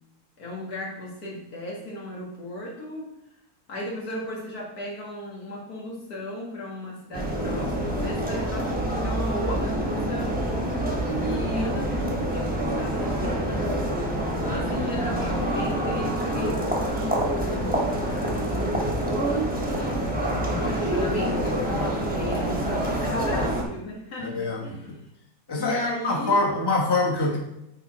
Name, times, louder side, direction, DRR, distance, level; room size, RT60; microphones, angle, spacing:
voice 1, 0.4-3.1 3.7-10.4 11.2-13.7 14.4-16.7 16.9-19.1 20.4-24.9 25.5-26.7, left 1 dB, 75° left, -3 dB, 2.3 m, -35 dB
sound 1, 7.1-23.6, right 1 dB, 5° right, 1.1 m, -26 dB
voice 2, 24.2-25.0 25.5-27.4, left 3 dB, 15° left, -2 dB, 1.2 m, -25 dB
8.1 x 4.5 x 4.2 m, 0.82 s
omnidirectional pair, 1.6 m